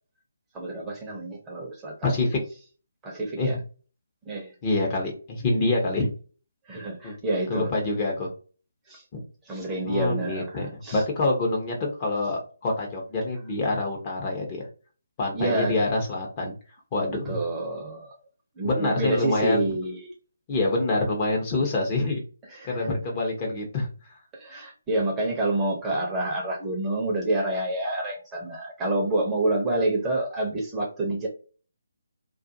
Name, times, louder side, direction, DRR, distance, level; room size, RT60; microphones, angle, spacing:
voice 1, 0.5-2.1 3.0-3.6 4.3-4.5 6.7-7.7 8.9-9.0 9.4-11.0 15.3-15.9 17.1-18.2 18.6-20.1 22.5-22.9 24.3-31.3, right 2 dB, 15° right, -2 dB, 0.7 m, -28 dB
voice 2, 2.0-2.4 3.4-3.6 4.6-6.1 7.0-7.1 7.5-8.3 9.9-14.6 15.2-16.5 16.9-17.4 18.6-19.6 20.5-22.2 22.6-23.9, left 2 dB, 25° left, -1 dB, 0.8 m, -26 dB
2.5 x 2.4 x 2.6 m, 0.38 s
figure-of-eight pair, 145°, 0 cm